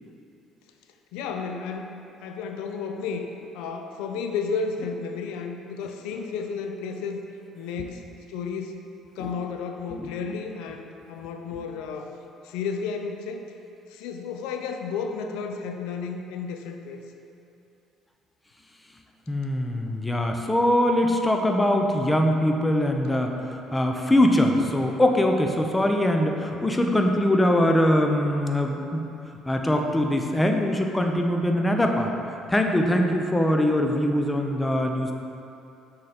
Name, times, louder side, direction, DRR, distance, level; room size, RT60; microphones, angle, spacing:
voice 1, 1.1-1.9 2.2-7.2 7.6-8.8 9.2-12.1 12.4-13.5 13.9-17.0, left 5 dB, 85° left, 4 dB, 0.4 m, -32 dB
voice 2, 19.3-29.0 29.5-32.1 32.5-35.1, left 1 dB, 15° left, 3 dB, 0.6 m, -22 dB
6.3 x 3.8 x 4.2 m, 2.8 s
supercardioid pair, 75°, 0 cm